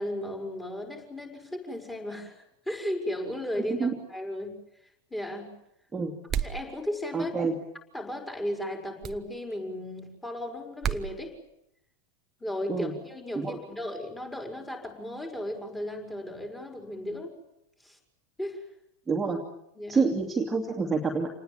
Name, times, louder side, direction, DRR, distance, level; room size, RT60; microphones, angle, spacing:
voice 1, 0.0-4.5 5.1-5.5 6.4-7.3 7.9-11.4 12.4-17.4 17.8-18.0 18.4-18.6 19.7-20.1, left 1 dB, 10° left, 2 dB, 5.4 m, -35 dB
sound 1, 6.3-6.6 9.0-9.2 10.8-11.1, right 9 dB, 30° right, 1.2 m, -30 dB
voice 2, 7.1-7.5 12.7-12.9 13.3-13.6 19.1-19.4 19.9-21.3, right 4 dB, 10° right, 0 dB, 2.7 m, -27 dB
27.5 x 20.0 x 8.9 m, 0.80 s
figure-of-eight pair, 90°, 0 cm